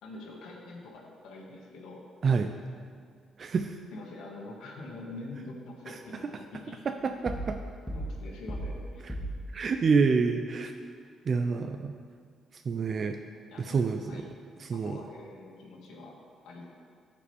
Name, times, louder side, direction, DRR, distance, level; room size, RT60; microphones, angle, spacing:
voice 1, 0.0-2.0 3.9-6.8 7.9-9.0 13.5-14.2 14.7-16.7, left 2 dB, 80° left, -2 dB, 1.5 m, -45 dB
voice 2, 3.4-3.8 5.9-6.0 6.9-7.6 9.5-10.7 11.3-11.9 12.5-13.2 13.6-14.3 14.6-15.0, right 5 dB, 45° right, 6 dB, 0.4 m, -27 dB
sound 1, 7.3-7.6 7.9-8.8 9.1-9.5, right 1 dB, 5° left, 1.8 m, -35 dB
15.0 x 5.1 x 3.4 m, 2.1 s
cardioid pair, 90°, 0 cm